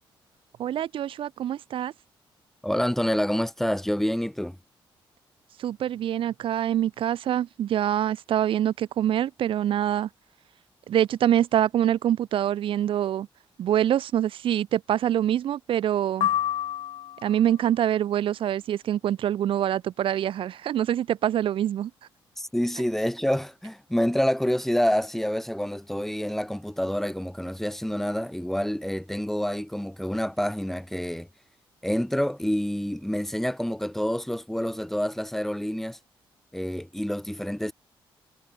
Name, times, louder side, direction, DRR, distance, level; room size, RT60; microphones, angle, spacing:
voice 1, 0.6-1.9 5.6-10.1 10.9-13.3 13.6-16.3 17.2-21.9, right 11 dB, 75° right, 2.3 m, -25 dB
voice 2, 2.6-4.6 22.4-31.3 31.8-36.0 36.5-37.7, equal, 5° left, 3.6 m, -27 dB
sound 1, 16.2-17.5, left 12 dB, 80° left, 1.3 m, -28 dB
cardioid pair, 100°, 9 cm